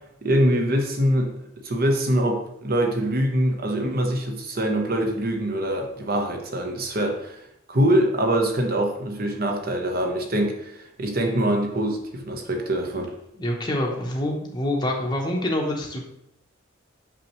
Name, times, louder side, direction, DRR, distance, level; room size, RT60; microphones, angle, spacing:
voice 1, 0.2-1.3 1.6-7.4 7.7-13.1, right 1 dB, 45° right, 3 dB, 1.0 m, -24 dB
voice 2, 13.3-16.0, left 1 dB, 20° left, -1 dB, 0.9 m, -26 dB
5.9 x 5.9 x 3.1 m, 0.81 s
head